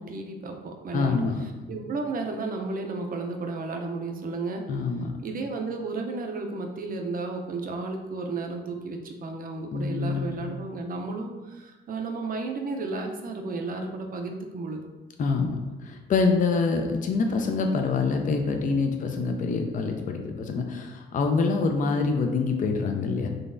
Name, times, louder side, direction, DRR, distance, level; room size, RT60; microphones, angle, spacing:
voice 1, 0.0-1.2 1.7-4.7 5.2-14.8, right 3 dB, 45° right, 3 dB, 0.6 m, -33 dB
voice 2, 0.9-1.4 4.7-5.1 9.7-10.5 15.2-23.3, left 4 dB, 40° left, 4 dB, 0.5 m, -26 dB
3.9 x 3.2 x 2.5 m, 1.1 s
cardioid pair, 90°, 20 cm